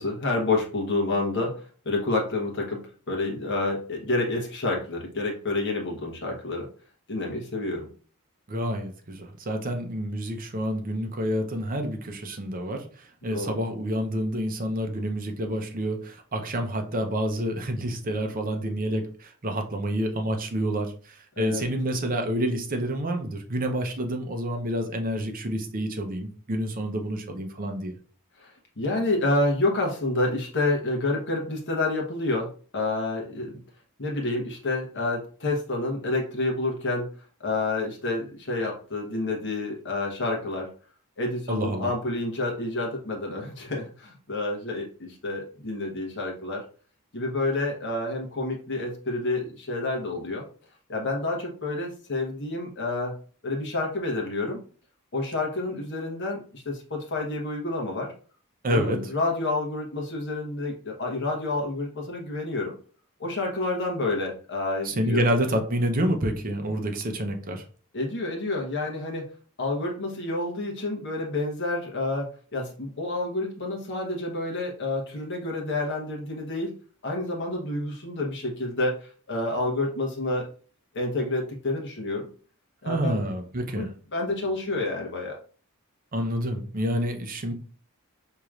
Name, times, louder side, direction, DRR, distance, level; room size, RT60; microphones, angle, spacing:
voice 1, 0.0-2.8 3.1-6.7 7.1-7.9 13.3-13.5 21.4-21.7 28.4-28.5 28.8-32.5 32.7-33.6 34.0-37.1 37.4-40.7 41.2-46.6 47.1-50.4 50.9-53.1 53.4-54.6 55.1-58.1 58.7-62.7 63.2-65.2 67.9-69.3 69.6-76.7 77.0-80.4 80.9-82.3 82.8-83.2 83.7-85.4, left 2 dB, 55° left, 0 dB, 1.1 m, -29 dB
voice 2, 8.5-27.9 41.5-41.9 58.6-59.0 64.8-67.6 82.9-83.9 86.1-87.5, equal, 40° right, 5 dB, 0.6 m, -28 dB
4.7 x 3.0 x 2.4 m, 0.42 s
head